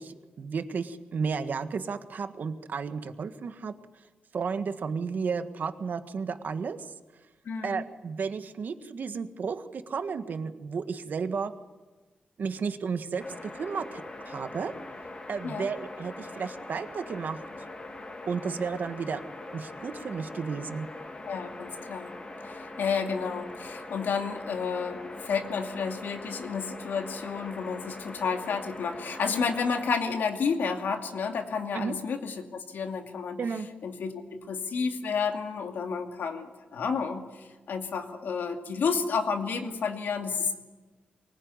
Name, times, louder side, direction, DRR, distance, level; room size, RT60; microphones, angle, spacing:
voice 1, 0.0-3.7 4.3-6.8 7.6-11.5 12.4-14.7 15.3-17.4 18.3-19.2 19.5-20.9 31.7-32.0 33.4-33.7, right 5 dB, 65° right, 9 dB, 1.5 m, -33 dB
voice 2, 7.5-7.8 15.4-15.7 21.3-22.1 22.4-33.4 33.8-40.5, left 5 dB, 85° left, 4 dB, 2.5 m, -31 dB
sound 1, 13.2-30.0, left 2 dB, 30° left, 3.2 m, -42 dB
23.5 x 20.0 x 9.7 m, 1.2 s
wide cardioid pair, 105°, 3 cm